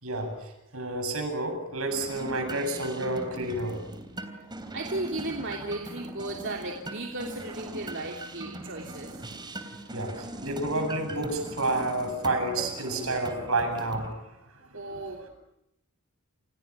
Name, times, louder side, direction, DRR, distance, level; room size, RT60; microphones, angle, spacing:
voice 1, 0.0-3.8 9.9-14.3 14.7-14.8 15.2-15.3, right 2 dB, 80° right, 6 dB, 7.8 m, -30 dB
sound 1, 1.9-14.1, right 1 dB, 20° right, 3.2 m, -40 dB
voice 2, 4.7-9.2 14.7-15.2, right 2 dB, 60° right, 1 dB, 3.0 m, -35 dB
29.5 x 29.0 x 6.2 m, 0.83 s
head